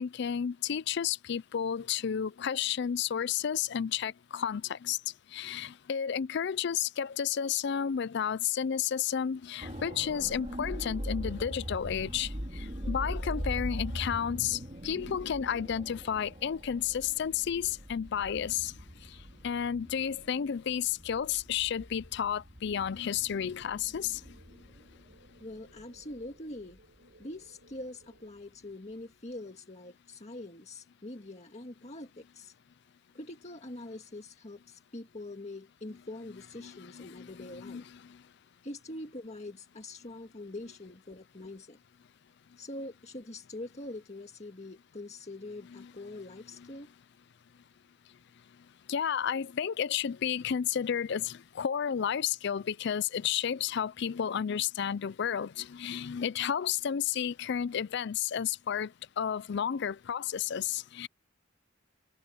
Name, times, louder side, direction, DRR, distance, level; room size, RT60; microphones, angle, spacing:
voice 1, 0.0-5.0 5.3-12.3 12.9-14.6 14.8-18.7 19.4-24.2 36.6-37.8 45.7-45.9 48.9-58.9 59.2-61.1, left 8 dB, 60° left, 0.4 m, -32 dB
sound 1, 9.6-27.5 27.8-28.0, equal, 35° right, 3.3 m, -41 dB
sound 2, 22.9-28.3, right 2 dB, 70° right, 6.9 m, -63 dB
voice 2, 25.4-26.8 27.2-32.5 33.1-37.8 38.6-41.8 42.6-46.9, left 2 dB, 35° left, 1.8 m, -44 dB
open air
head